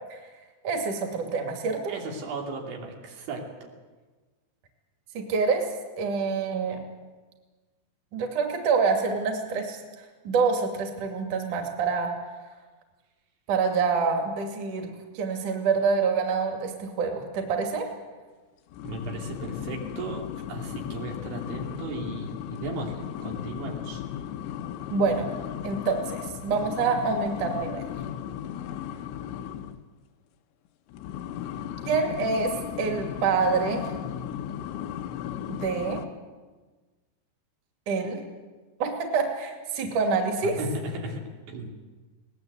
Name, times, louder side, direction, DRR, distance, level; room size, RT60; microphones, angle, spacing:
voice 1, 0.6-1.9 5.2-5.7 6.0-6.8 8.1-9.8 10.2-12.1 13.5-17.9 24.9-25.3 25.6-27.8 31.9-33.9 35.5-36.0 37.9-38.2 38.8-40.6, right 5 dB, 50° right, 3 dB, 3.6 m, -26 dB
voice 2, 1.9-3.4 18.8-20.2 20.5-24.0 40.6-41.2 41.5-41.7, right 2 dB, 85° right, 0 dB, 5.2 m, -35 dB
sound 1, 18.7-29.8 30.9-36.1, left 10 dB, 80° left, 3.1 m, -36 dB
22.0 x 19.0 x 8.2 m, 1.3 s
omnidirectional pair, 5.2 m